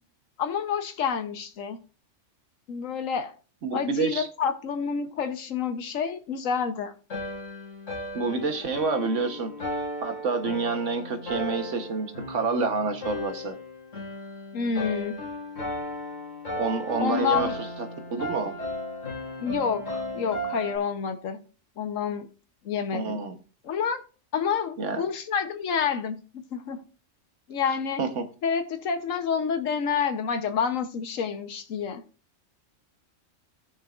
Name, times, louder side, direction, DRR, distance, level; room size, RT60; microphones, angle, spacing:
voice 1, 0.4-1.8 2.7-3.3 3.7-6.9 14.5-15.2 17.0-17.6 19.4-21.4 21.8-22.3 22.6-23.2 23.6-24.0 24.3-26.8 27.5-28.0 28.4-32.0, left 6 dB, 90° left, 1.3 m, -28 dB
voice 2, 3.6-4.3 8.1-9.5 10.0-13.5 16.6-18.6 22.9-23.4 24.8-25.0 28.0-28.2, right 4 dB, 70° right, 1.5 m, -28 dB
sound 1, 7.1-20.8, left 1 dB, 70° left, 2.4 m, -35 dB
16.0 x 6.2 x 2.5 m
omnidirectional pair, 1.3 m